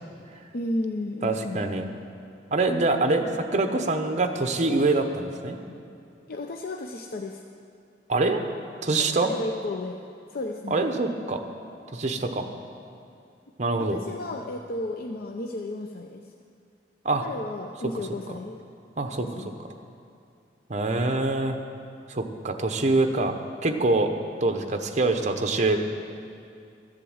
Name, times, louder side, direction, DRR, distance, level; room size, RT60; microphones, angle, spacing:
voice 1, 0.5-1.7 6.3-7.4 8.9-10.0 10.3-10.9 13.8-16.3 17.2-18.6 19.2-19.6, left 2 dB, 55° left, 3 dB, 0.6 m, -33 dB
voice 2, 1.2-1.8 2.5-5.6 8.1-8.4 8.8-9.3 10.7-11.4 11.9-12.5 13.6-14.0 17.0-17.2 19.0-19.3 20.7-21.6 22.1-24.1 24.4-25.8, right 2 dB, 45° right, 6 dB, 0.9 m, -24 dB
13.5 x 7.7 x 7.9 m, 2.5 s
head